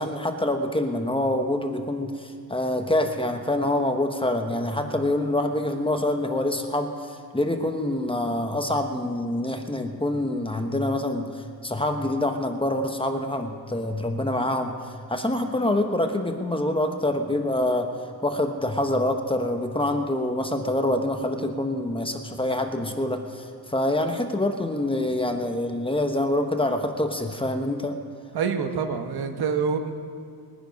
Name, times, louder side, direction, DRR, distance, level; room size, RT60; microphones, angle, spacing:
voice 1, 0.0-14.8 15.1-17.9 18.2-28.0, left 1 dB, 15° left, 5 dB, 1.1 m, -26 dB
voice 2, 28.3-29.9, right 6 dB, 75° right, 6 dB, 1.4 m, -26 dB
21.5 x 10.0 x 5.3 m, 2.3 s
cardioid pair, 105°, 39 cm